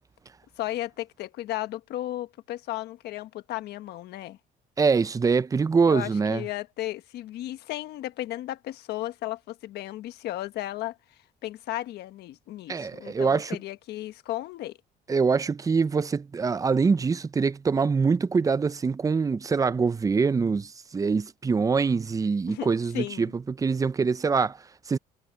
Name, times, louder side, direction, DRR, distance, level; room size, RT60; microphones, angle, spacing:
voice 1, 0.6-4.4 5.8-11.0 11.4-14.8 22.5-22.7 22.9-23.3, left 15 dB, 75° left, 1.4 m, -34 dB
voice 2, 4.8-6.4 12.7-13.6 15.1-25.0, right 5 dB, 20° right, 0.5 m, -24 dB
cardioid pair, 110°, 17 cm